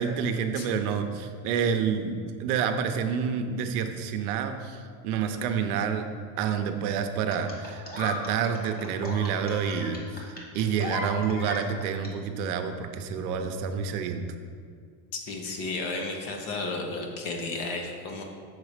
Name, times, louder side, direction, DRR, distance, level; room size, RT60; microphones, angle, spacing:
voice 1, 0.0-6.1 6.4-10.0 10.5-14.2, right 7 dB, 75° right, 7 dB, 0.8 m, -28 dB
sound 1, 7.3-12.1 13.3-13.4, left 2 dB, 20° left, 0.9 m, -36 dB
voice 2, 15.3-18.2, left 3 dB, 50° left, 2 dB, 1.1 m, -33 dB
6.6 x 4.1 x 4.9 m, 2.1 s
supercardioid pair, 150°, 45 cm